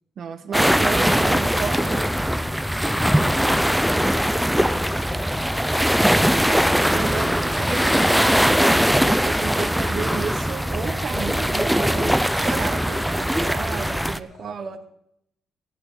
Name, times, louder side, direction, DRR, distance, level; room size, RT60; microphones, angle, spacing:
voice 1, 0.2-2.1 6.2-6.5 6.9-14.8, right 6 dB, 55° right, 7 dB, 1.4 m, -32 dB
sound 1, 0.5-14.2, equal, ahead, 0.6 m, -21 dB
voice 2, 2.0-3.7 14.3-14.8, left 2 dB, 50° left, -3 dB, 6.8 m, -47 dB
16.0 x 11.5 x 4.0 m, 0.75 s
cardioid pair, 90°, 0 cm